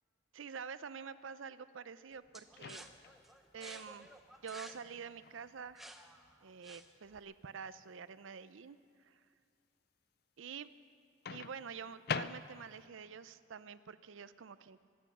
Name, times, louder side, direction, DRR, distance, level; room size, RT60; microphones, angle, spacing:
voice 1, 0.3-2.8 3.5-4.1 4.4-5.9 6.4-9.2 10.4-10.7 11.3-14.8, right 6 dB, 85° right, 14 dB, 0.5 m, -47 dB
sound 1, 2.3-7.2, right 1 dB, ahead, 0.6 m, -54 dB
Microwave oven, 2.5-3.2 5.2-5.4 11.3-12.9, left 6 dB, 50° left, 0.4 m, -42 dB
25.0 x 9.3 x 6.1 m, 2.3 s
head